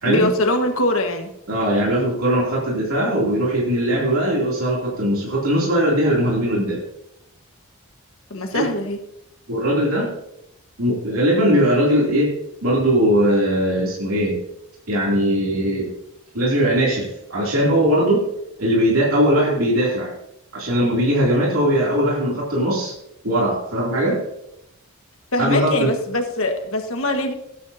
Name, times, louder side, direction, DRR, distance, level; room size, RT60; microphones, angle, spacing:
voice 1, 0.0-1.3 8.3-9.0 25.3-27.3, left 1 dB, 70° left, 4 dB, 1.5 m, -22 dB
voice 2, 1.5-6.8 8.5-8.7 9.5-10.1 10.8-12.3 12.6-14.4 14.9-15.9 16.3-18.3 18.6-20.1 20.5-22.9 23.2-24.2 25.4-25.9, equal, 75° right, -5 dB, 3.0 m, -20 dB
17.5 x 9.7 x 2.8 m, 0.81 s
head